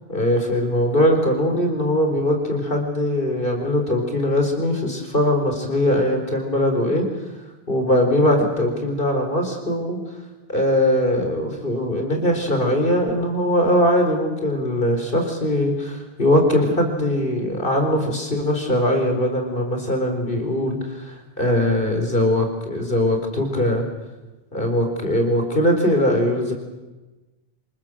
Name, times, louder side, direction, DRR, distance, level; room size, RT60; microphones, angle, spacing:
voice 1, 0.1-7.1 7.7-10.0 10.5-23.8 24.5-26.5, left 1 dB, 60° left, 4 dB, 4.6 m, -21 dB
27.0 x 19.5 x 7.7 m, 1.1 s
omnidirectional pair, 1.0 m